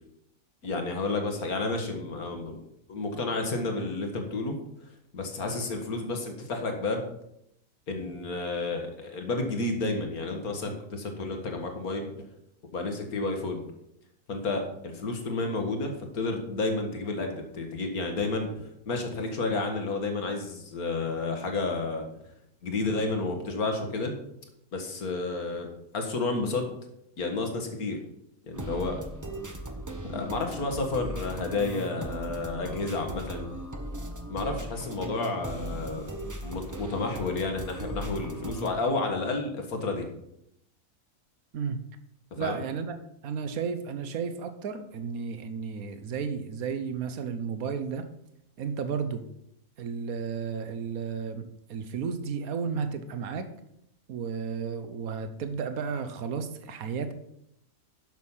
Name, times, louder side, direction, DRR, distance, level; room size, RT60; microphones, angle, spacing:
voice 1, 0.6-2.6 2.9-4.6 5.1-7.1 7.9-12.1 12.7-13.6 14.3-22.1 22.6-24.1 24.7-26.7 27.2-28.0 28.5-29.0 30.0-33.5 34.3-36.1 36.4-40.1 42.4-42.6, left 3 dB, 70° left, 4 dB, 2.1 m, -31 dB
sound 1, 28.5-38.7, right 1 dB, 15° right, 0.8 m, -38 dB
voice 2, 42.4-43.0 43.2-48.1 48.6-49.2 49.8-53.5 54.1-57.1, right 6 dB, 70° right, 9 dB, 1.4 m, -33 dB
10.5 x 6.4 x 5.7 m, 0.78 s
omnidirectional pair, 1.6 m